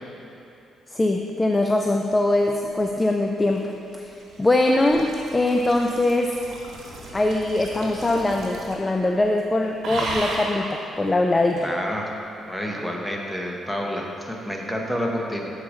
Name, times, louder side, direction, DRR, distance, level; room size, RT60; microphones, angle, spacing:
voice 1, 0.9-6.4 7.1-11.7, left 2 dB, 20° left, 3 dB, 0.3 m, -22 dB
sound 1, 3.2-8.9 9.2-9.5 9.8-10.6 11.6-11.7, right 2 dB, 65° right, 1.2 m, -35 dB
voice 2, 11.6-12.1 12.5-15.5, equal, 5° left, 0 dB, 0.8 m, -29 dB
7.5 x 4.8 x 3.7 m, 2.8 s
cardioid pair, 90°, 0 cm